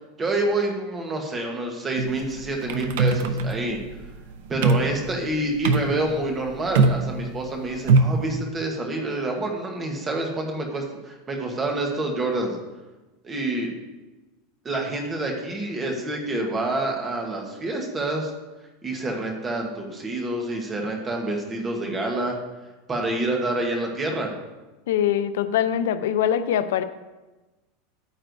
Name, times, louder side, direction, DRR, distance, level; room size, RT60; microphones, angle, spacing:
voice 1, 0.2-3.8 4.5-12.6 13.2-13.7 14.6-18.3 18.8-22.4 22.9-24.3, right 2 dB, 15° right, 1 dB, 1.1 m, -27 dB
sound 1, 2.0-8.3, right 3 dB, 75° right, 0.7 m, -23 dB
voice 2, 24.9-26.8, left 10 dB, 80° left, 12 dB, 0.5 m, -23 dB
11.0 x 9.2 x 2.6 m, 1.1 s
supercardioid pair, 175°, 0 cm